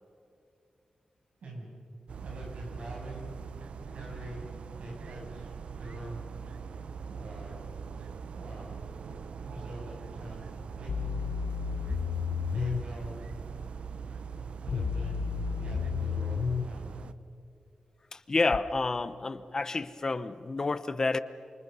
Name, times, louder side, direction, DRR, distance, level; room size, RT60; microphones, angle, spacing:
voice 1, 1.4-1.8 2.2-3.2 3.8-4.5 4.8-5.5 5.8-6.3 7.1-11.2 12.5-13.2 14.3-16.9, right 1 dB, 90° right, -1 dB, 7.9 m, -44 dB
sound 1, 2.1-17.1, right 6 dB, 70° right, 0.7 m, -42 dB
sound 2, 10.9-12.8 14.7-16.7 18.5-18.6, left 6 dB, 75° left, 0.7 m, -31 dB
voice 2, 18.1-21.2, left 3 dB, 30° left, 14 dB, 0.7 m, -29 dB
28.5 x 26.0 x 5.5 m, 2.6 s
wide cardioid pair, 175°, 2 cm